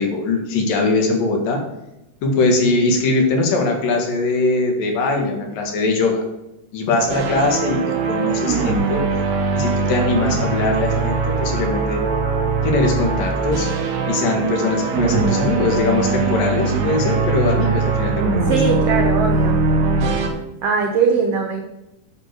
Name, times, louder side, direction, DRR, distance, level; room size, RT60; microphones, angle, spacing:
voice 1, 0.0-1.6 2.2-6.2 6.7-7.8 8.1-9.0 9.5-12.0 12.6-13.7 14.1-18.8, left 3 dB, 80° left, 2 dB, 3.3 m, -21 dB
sound 1, 7.1-20.3, right 4 dB, 70° right, 2.4 m, -21 dB
voice 2, 18.5-19.6 20.6-21.6, right 5 dB, 90° right, 4 dB, 1.3 m, -20 dB
9.7 x 4.8 x 6.5 m, 0.93 s
omnidirectional pair, 3.9 m